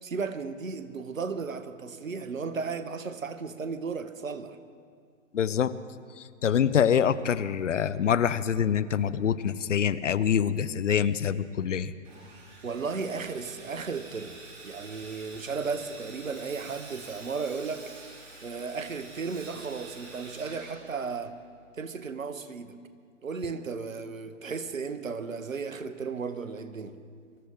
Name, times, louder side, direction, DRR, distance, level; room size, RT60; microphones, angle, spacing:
voice 1, 0.0-4.6 12.6-14.4 14.6-17.9 18.4-21.4 21.8-22.8 23.2-27.0, right 5 dB, 80° right, 1.2 m, -35 dB
voice 2, 5.3-5.7 6.2-11.9, left 8 dB, 65° left, 0.8 m, -25 dB
Sawing, 12.0-21.5, right 2 dB, 30° right, 4.1 m, -47 dB
24.0 x 14.0 x 3.7 m
figure-of-eight pair, 125°, 40 cm